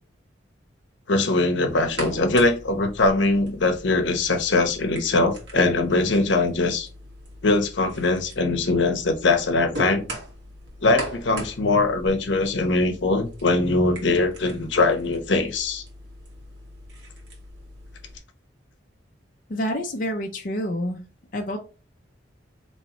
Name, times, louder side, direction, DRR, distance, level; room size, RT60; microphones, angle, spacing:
voice 1, 1.1-6.9 7.4-10.0 10.8-15.8, left 2 dB, 75° left, 6 dB, 0.8 m, -22 dB
sound 1, 1.7-18.2, right 1 dB, 70° right, 1.4 m, -40 dB
voice 2, 19.5-21.0 21.3-21.6, equal, 45° left, 2 dB, 0.5 m, -28 dB
4.4 x 3.0 x 2.8 m, 0.34 s
head